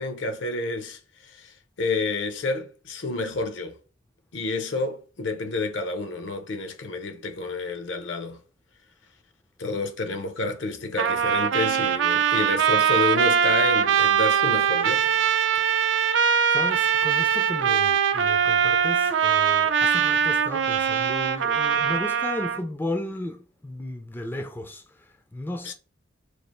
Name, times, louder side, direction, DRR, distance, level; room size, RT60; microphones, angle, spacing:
voice 1, 0.0-3.8 4.3-8.4 9.6-15.1 25.7-25.8, left 2 dB, 70° left, 0.6 m, -29 dB
Trumpet, 11.0-22.6, right 7 dB, 70° right, 0.4 m, -22 dB
voice 2, 15.0-15.9 16.5-25.7, left 1 dB, 10° left, 0.3 m, -35 dB
3.2 x 2.4 x 4.1 m
head